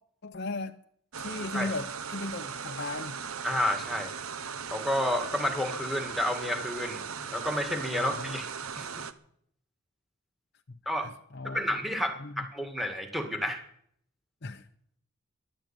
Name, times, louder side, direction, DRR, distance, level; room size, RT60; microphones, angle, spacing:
voice 1, 0.2-0.7 1.2-3.2 7.9-8.4 11.0-11.6 12.2-12.5 14.4-14.7, left 2 dB, 50° left, 0.7 m, -37 dB
sound 1, 1.1-9.1, right 6 dB, 85° right, 1.0 m, -38 dB
voice 2, 3.4-4.1 4.7-8.5 8.8-8.9 10.9-11.1 11.4-13.6, left 1 dB, ahead, 2.0 m, -30 dB
14.0 x 11.5 x 9.0 m
head